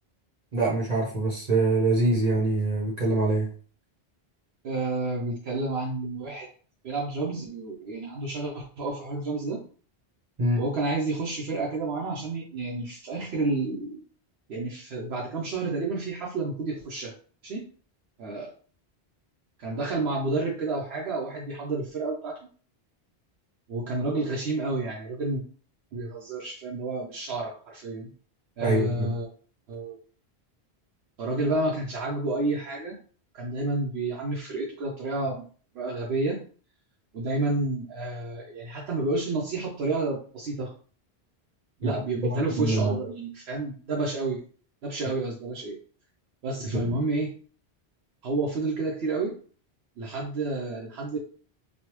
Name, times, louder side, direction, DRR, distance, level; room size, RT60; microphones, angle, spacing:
voice 1, 0.5-3.5 10.4-10.6 28.6-29.1 41.8-41.9 42.2-43.0 46.6-46.9, right 2 dB, 45° right, -4 dB, 0.8 m, -25 dB
voice 2, 4.6-6.5 6.8-9.6 10.6-14.0 14.5-17.1 17.4-17.7 18.2-18.5 19.6-22.4 23.7-25.4 25.9-28.1 28.6-29.3 29.7-30.0 31.2-33.0 33.3-35.5 35.7-36.4 37.1-40.7 41.8-44.4 44.8-45.8 46.4-47.3 48.2-49.3 50.0-51.2, right 2 dB, 75° right, -3 dB, 0.9 m, -30 dB
3.2 x 2.3 x 2.9 m, 0.42 s
omnidirectional pair, 1.1 m